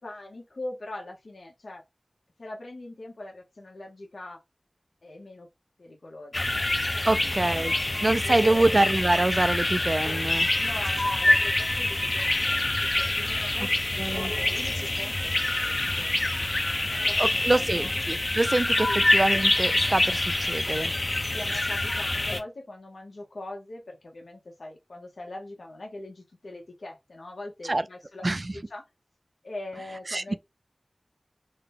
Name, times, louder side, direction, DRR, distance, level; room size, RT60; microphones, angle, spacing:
voice 1, 0.0-1.8 2.4-4.4 5.0-5.5 5.8-6.7 7.6-7.7 8.2-8.7 10.6-16.2 16.5-17.9 18.9-19.0 21.3-28.3 28.5-28.8 29.4-30.4, left 2 dB, 85° left, 1.0 m, -42 dB
sound 1, 6.3-22.4, left 2 dB, 45° left, 0.7 m, -26 dB
voice 2, 7.0-7.7 8.0-10.5 14.0-14.3 17.2-20.9 27.6-27.8 28.2-28.5 30.1-30.4, right 2 dB, 45° right, 0.3 m, -25 dB
3.8 x 2.2 x 3.4 m
wide cardioid pair, 50°, 0 cm